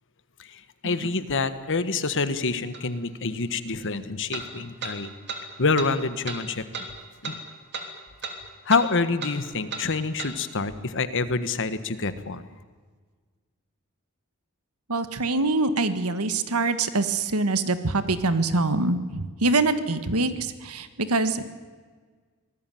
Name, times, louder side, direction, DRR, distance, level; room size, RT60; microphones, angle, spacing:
voice 1, 0.4-5.1 5.6-6.9 7.2-7.4 8.6-12.5, left 4 dB, 60° left, 12 dB, 1.5 m, -27 dB
sound 1, 2.7-2.8 4.3-4.5 4.8-5.0 5.3-5.4 5.8-5.9 6.3-6.4 6.7-6.9 7.2-7.4 7.7-7.9 8.2-8.4 8.7-8.9 9.2-9.4 9.7-9.9 10.2-10.3, right 5 dB, 50° right, 3.1 m, -34 dB
voice 2, 14.9-21.5, right 3 dB, 80° right, 11 dB, 1.6 m, -24 dB
25.0 x 19.0 x 9.3 m, 1.5 s
head